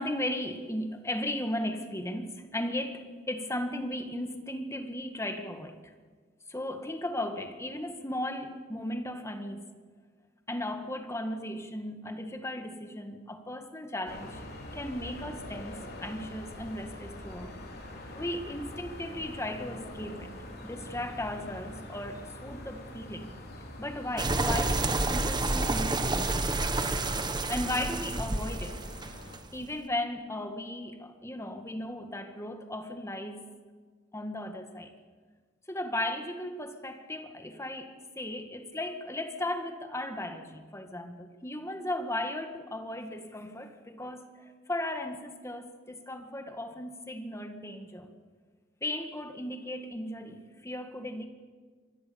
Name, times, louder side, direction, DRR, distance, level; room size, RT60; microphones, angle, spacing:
voice 1, 0.0-5.8 6.5-9.7 10.5-14.4 14.7-17.5 18.1-20.3 20.6-23.3 23.8-26.4 27.5-28.8 29.5-33.5 34.1-34.9 35.7-48.1 48.8-51.3, left 1 dB, 15° left, 6 dB, 1.9 m, -36 dB
sound 1, 14.0-29.4, left 1 dB, 55° left, 4.0 m, -44 dB
sound 2, 24.2-29.6, right 2 dB, 25° right, 1.3 m, -29 dB
26.0 x 20.5 x 7.1 m, 1.5 s
head